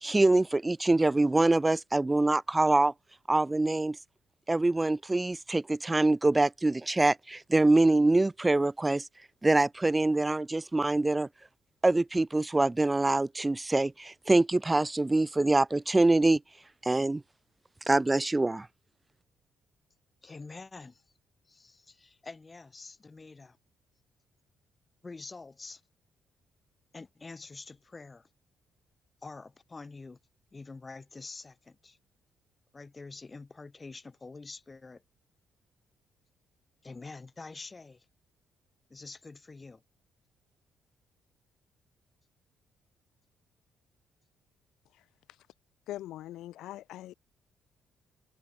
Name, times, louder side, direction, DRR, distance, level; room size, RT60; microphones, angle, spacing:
voice 1, 0.0-2.9 3.3-4.0 4.5-9.0 9.4-11.3 11.8-16.4 16.8-17.2 17.9-18.7, right 2 dB, 15° right, 0.9 m, -25 dB
voice 2, 20.2-21.0 21.4-23.6 25.0-25.8 26.9-28.3 29.2-30.2 30.5-32.0 32.7-35.0 36.8-38.1 38.9-39.8, left 3 dB, 25° left, 6.7 m, -46 dB
voice 3, 45.9-47.1, left 14 dB, 85° left, 4.1 m, -41 dB
cardioid pair, 90°, 0 cm